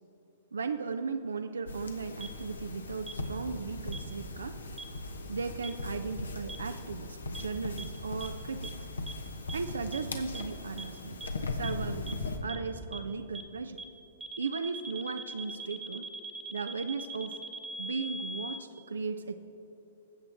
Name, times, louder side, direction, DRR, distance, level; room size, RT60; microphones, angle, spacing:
voice 1, 0.5-4.6 5.3-8.8 9.5-13.8 14.4-16.1 16.5-17.4 17.8-19.4, right 4 dB, 70° right, 8 dB, 0.4 m, -36 dB
sound 1, 1.6-12.4, left 2 dB, 75° left, 1.0 m, -39 dB
sound 2, 2.2-2.3 3.1-3.2 3.9-4.0 4.8-4.9 5.6-5.7 6.5-6.6 7.3-7.4 7.8-7.9 8.2-8.3 8.6-8.7 9.1-9.2 9.5-9.6 9.9-10.0 10.3-10.4 10.8-10.9 11.2-11.3 11.6-11.7 12.1-12.2 12.5-12.6 12.9-13.0 13.3-13.4 13.8-13.9 14.2-18.6, right 3 dB, 10° right, 0.7 m, -40 dB
20.0 x 8.1 x 3.5 m, 3.0 s
figure-of-eight pair, 110°, 0 cm